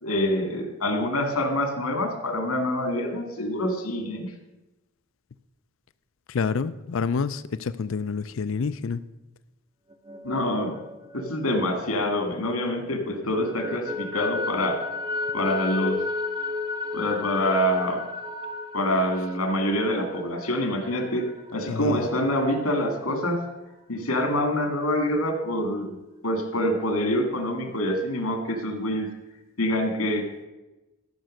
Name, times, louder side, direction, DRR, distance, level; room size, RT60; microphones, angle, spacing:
voice 1, 0.0-4.3 10.2-10.8 11.1-14.8 15.3-16.0 16.9-18.0 18.7-21.3 21.5-23.4 23.9-25.9 26.2-29.1 29.6-30.3, left 1 dB, 85° left, 5 dB, 2.2 m, -26 dB
voice 2, 6.3-9.0 21.7-22.1, left 5 dB, 65° left, 15 dB, 0.4 m, -28 dB
sound 1, 9.9-12.7 13.1-22.5, left 3 dB, 20° right, 0.7 m, -34 dB
13.5 x 5.9 x 6.4 m, 1.0 s
head